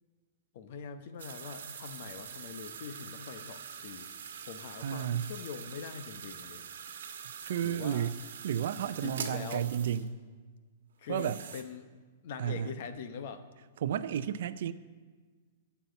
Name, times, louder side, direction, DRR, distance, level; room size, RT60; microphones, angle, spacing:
voice 1, 0.5-4.1 4.4-6.6 7.6-8.1 9.0-9.7 11.0-11.9 12.2-13.5, left 6 dB, 55° left, 9 dB, 0.9 m, -43 dB
sound 1, 1.2-10.1 11.0-11.6, right 7 dB, 80° right, 1.2 m, -44 dB
voice 2, 4.8-5.3 7.4-8.2 8.4-10.1 11.1-11.4 12.4-12.7 13.8-14.7, right 9 dB, 65° right, 14 dB, 0.5 m, -32 dB
8.9 x 7.1 x 8.1 m, 1.4 s
hypercardioid pair, 155°, 0 cm